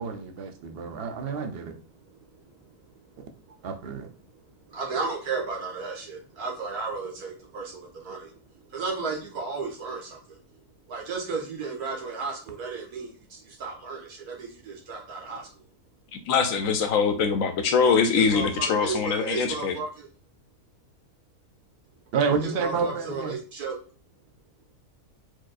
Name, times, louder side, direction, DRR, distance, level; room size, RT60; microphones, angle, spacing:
voice 1, 0.0-1.7 3.6-4.1 22.1-23.3, right 5 dB, 60° right, 5 dB, 0.6 m, -29 dB
voice 2, 4.7-8.3 8.7-10.4 10.9-15.5 18.1-20.1 22.4-23.7, right 4 dB, 85° right, -1 dB, 1.8 m, -34 dB
voice 3, 16.1-19.7, left 5 dB, 70° left, 8 dB, 0.9 m, -23 dB
4.6 x 4.4 x 2.4 m, 0.38 s
omnidirectional pair, 1.6 m